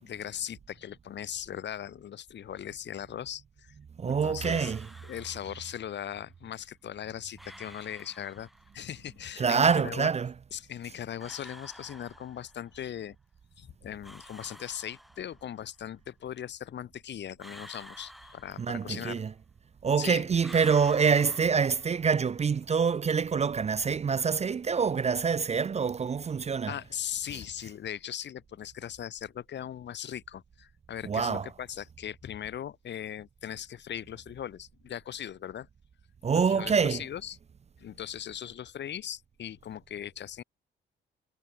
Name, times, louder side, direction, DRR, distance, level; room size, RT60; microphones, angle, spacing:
voice 1, 0.0-3.7 4.0-4.7 5.0-8.5 8.7-10.1 10.5-13.2 13.6-19.2 20.0-20.3 26.7-35.7 36.3-37.4 37.8-40.4, left 10 dB, 60° left, 2.5 m, -39 dB
voice 2, 4.0-4.9 9.4-10.3 18.6-19.3 19.8-26.7 31.1-31.5 36.2-37.0, right 6 dB, 35° right, 0.7 m, -26 dB
sound 1, 4.4-5.9 7.4-8.9 11.2-12.7 14.0-15.6 17.4-19.1 20.4-22.3, equal, ahead, 2.7 m, -50 dB
cardioid pair, 90°, 20 cm